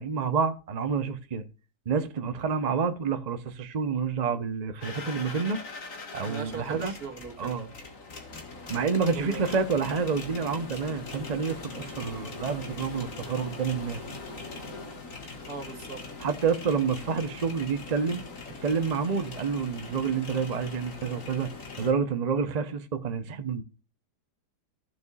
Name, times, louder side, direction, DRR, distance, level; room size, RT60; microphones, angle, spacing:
voice 1, 0.0-1.4 1.9-5.6 6.1-6.9 7.4-7.7 8.7-14.0 16.2-18.2 18.6-21.5 21.8-23.6, right 5 dB, 35° right, 0.7 m, -28 dB
sound 1, 4.8-21.9, left 3 dB, 50° left, 2.1 m, -41 dB
voice 2, 6.2-7.6 9.2-9.5 15.5-16.0, right 5 dB, 65° right, 1.9 m, -39 dB
15.0 x 6.9 x 2.4 m
omnidirectional pair, 1.8 m